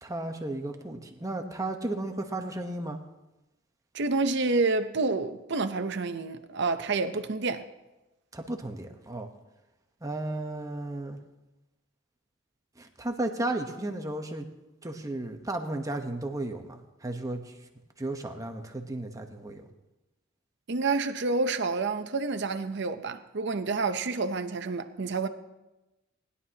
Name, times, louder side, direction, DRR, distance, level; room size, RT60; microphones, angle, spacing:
voice 1, 0.0-3.0 8.3-9.3 10.0-11.2 12.8-14.5 14.8-17.5 18.0-19.7, right 2 dB, 15° right, 1.0 m, -34 dB
voice 2, 3.9-7.7 20.7-25.3, right 3 dB, 65° right, 0.8 m, -28 dB
19.5 x 11.0 x 2.9 m
head